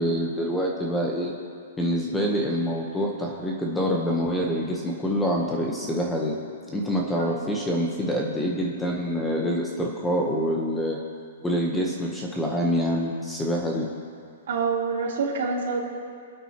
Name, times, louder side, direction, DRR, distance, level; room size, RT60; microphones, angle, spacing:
voice 1, 0.0-1.3 1.8-6.3 6.7-11.0 11.4-13.9, equal, 5° left, -1 dB, 1.0 m, -26 dB
voice 2, 14.5-15.8, right 4 dB, 65° right, -5 dB, 3.5 m, -26 dB
26.0 x 9.0 x 3.0 m, 2.2 s
hypercardioid pair, 170°, 0 cm